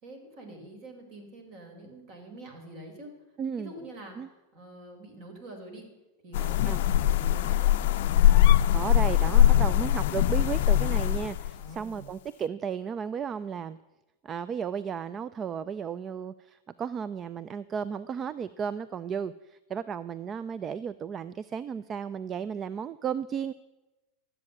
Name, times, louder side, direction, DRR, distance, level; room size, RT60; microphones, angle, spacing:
voice 1, 0.0-3.1 3.6-4.2 4.5-5.9 6.2-8.1 11.6-12.1, right 1 dB, 50° right, 3 dB, 4.2 m, -45 dB
voice 2, 3.4-3.7 4.2-4.3 6.7-6.9 8.7-13.8 14.2-23.5, right 7 dB, 30° right, 16 dB, 0.4 m, -34 dB
sound 1, 6.3-11.6, left 12 dB, 65° left, 0.5 m, -22 dB
12.5 x 8.1 x 8.8 m, 1.1 s
hypercardioid pair, 95°, 0 cm